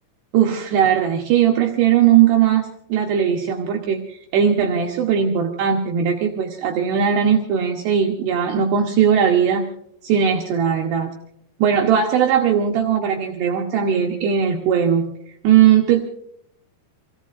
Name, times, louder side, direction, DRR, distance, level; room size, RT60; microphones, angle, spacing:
voice 1, 0.3-9.6 10.0-11.2 11.6-15.1 15.4-16.0, right 8 dB, 70° right, 0 dB, 3.0 m, -18 dB
27.5 x 18.0 x 2.6 m, 0.71 s
omnidirectional pair, 5.5 m